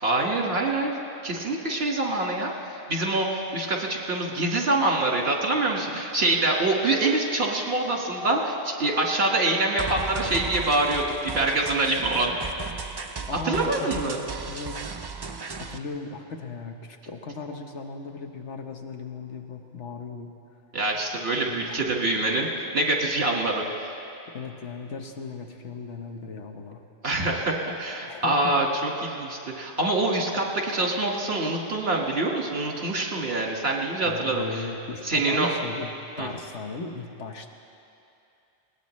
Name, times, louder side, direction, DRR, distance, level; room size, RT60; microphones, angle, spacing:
voice 1, 0.0-12.3 13.4-14.2 20.7-23.9 27.0-34.6 35.0-35.5 36.2-36.3, right 2 dB, 65° right, -1 dB, 2.0 m, -25 dB
sound 1, 9.8-15.8, right 4 dB, 35° right, 0.4 m, -35 dB
voice 2, 13.3-15.0 15.3-20.3 21.5-21.9 24.3-26.8 28.1-28.6 34.0-35.9 36.2-37.5, left 4 dB, 85° left, 4 dB, 1.4 m, -37 dB
21.0 x 18.5 x 3.2 m, 2.7 s
omnidirectional pair, 1.2 m